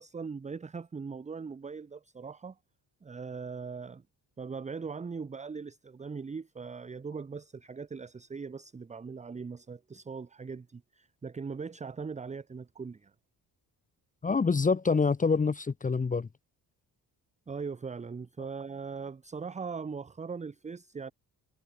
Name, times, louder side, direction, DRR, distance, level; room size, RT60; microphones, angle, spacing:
voice 1, 0.0-2.6 3.0-4.0 4.4-13.1 17.5-21.1, right 5 dB, 20° right, 0.8 m, -40 dB
voice 2, 14.2-16.3, left 4 dB, 20° left, 1.0 m, -26 dB
cardioid pair, 145°, 38 cm